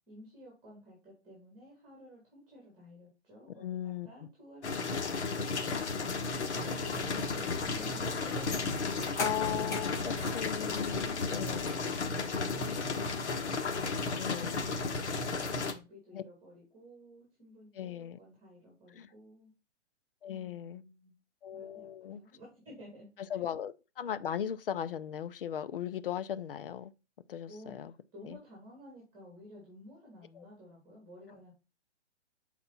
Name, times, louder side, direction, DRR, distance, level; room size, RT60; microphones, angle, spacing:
voice 1, 0.1-6.2 6.6-8.8 12.2-19.5 20.3-21.1 21.5-23.4 27.5-31.5, left 1 dB, 15° right, 3.0 m, -54 dB
voice 2, 3.6-4.1 6.3-6.7 9.2-11.9 12.6-12.7 14.1-14.6 16.1-16.2 17.7-18.2 18.9-19.1 20.2-20.8 21.4-22.2 23.3-26.9 27.3-27.9 28.2-28.4 30.3-30.5, left 9 dB, 50° left, 0.6 m, -38 dB
sound 1, 4.6-15.7, left 4 dB, 70° left, 1.4 m, -34 dB
sound 2, 6.2-11.7, left 2 dB, 10° left, 0.7 m, -43 dB
7.0 x 4.2 x 4.2 m
hypercardioid pair, 160°, 35 cm